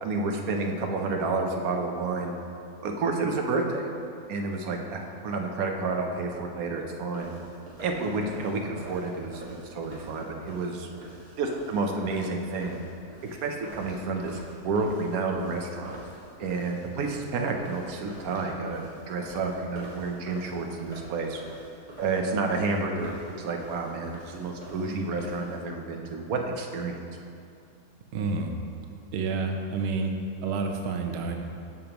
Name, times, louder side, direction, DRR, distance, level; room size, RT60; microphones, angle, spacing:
voice 1, 0.0-2.4 2.8-3.9 4.3-7.3 7.8-10.9 11.4-12.8 13.4-16.0 16.4-21.4 22.0-27.0, right 3 dB, 65° right, 2 dB, 1.1 m, -30 dB
sound 1, 7.1-25.6, right 1 dB, 25° right, 1.7 m, -46 dB
voice 2, 28.1-28.5 29.1-30.1 30.4-31.3, right 4 dB, 80° right, 3 dB, 0.5 m, -29 dB
12.5 x 5.1 x 3.0 m, 2.5 s
omnidirectional pair, 1.9 m